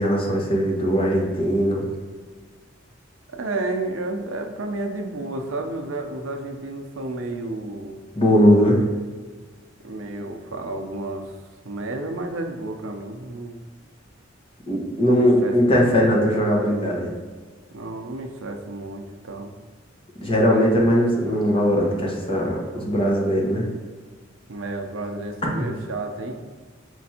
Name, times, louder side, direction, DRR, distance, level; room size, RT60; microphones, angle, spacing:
voice 1, 0.0-1.9 8.2-8.8 14.7-17.1 20.2-23.7, equal, 30° left, -2 dB, 0.9 m, -20 dB
voice 2, 3.3-8.0 9.8-11.3 11.6-13.6 15.0-16.2 17.7-19.5 24.5-26.4, right 2 dB, 80° right, 4 dB, 0.6 m, -31 dB
4.5 x 2.5 x 4.1 m, 1.5 s
head